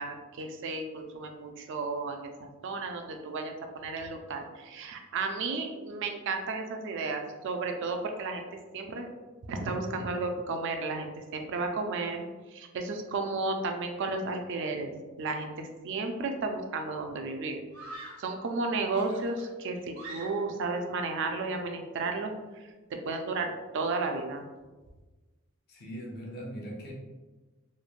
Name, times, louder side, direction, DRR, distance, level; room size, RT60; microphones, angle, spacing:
voice 1, 0.0-8.5 8.7-9.1 9.5-12.2 12.5-14.9 15.2-17.6 18.2-22.3 22.9-24.4, right 3 dB, 60° right, 4 dB, 0.4 m, -33 dB
Screaming, 16.5-16.6 17.7-18.4 18.9-20.6, right 2 dB, 85° right, 0.8 m, -45 dB
voice 2, 25.7-26.9, equal, 50° left, -2 dB, 0.6 m, -40 dB
3.1 x 2.1 x 2.4 m, 1.2 s
head